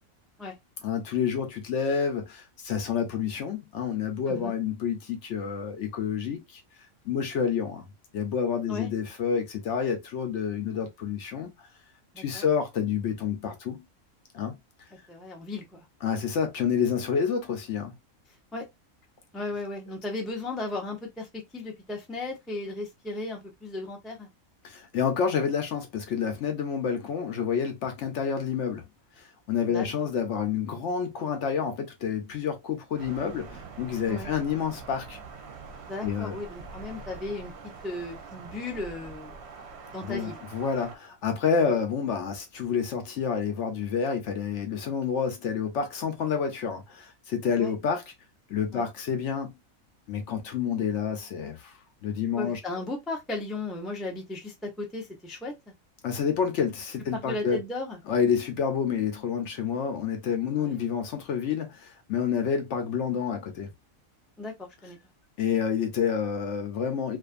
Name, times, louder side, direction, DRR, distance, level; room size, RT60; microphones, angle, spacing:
voice 1, 0.8-6.6 7.1-7.8 8.1-11.5 12.2-13.8 14.3-14.5 16.0-17.9 24.6-28.8 29.2-35.2 36.0-36.4 40.1-48.0 48.5-49.6 50.1-51.7 52.0-52.6 56.0-57.6 58.1-63.7 65.4-67.2, left 7 dB, 65° left, 0.8 m, -29 dB
voice 2, 15.1-15.9 18.5-18.6 19.3-24.3 29.7-29.9 34.1-34.3 35.9-37.5 37.8-39.4 39.9-40.4 47.6-47.7 48.7-48.8 52.4-55.5 57.1-58.0 59.6-59.7 60.6-60.8 64.4-65.0, left 2 dB, ahead, 0.3 m, -36 dB
Thunder, 33.0-41.0, right 5 dB, 60° right, 0.8 m, -44 dB
2.5 x 2.4 x 2.4 m
omnidirectional pair, 1.5 m